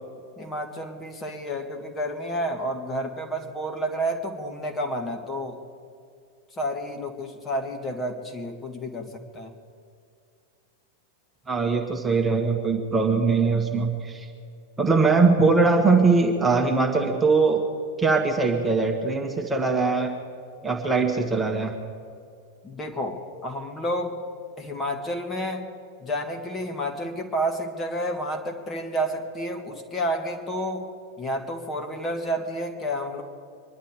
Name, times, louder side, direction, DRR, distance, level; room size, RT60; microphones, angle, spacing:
voice 1, 0.4-5.6 6.6-9.5 22.6-24.2 24.6-25.7 26.0-33.2, equal, 20° left, 3 dB, 2.0 m, -30 dB
voice 2, 11.5-14.3 14.8-17.6 18.0-20.1 20.6-21.7, right 4 dB, 10° right, 1 dB, 1.7 m, -21 dB
25.0 x 11.0 x 5.1 m, 2.4 s
figure-of-eight pair, 90°, 0 cm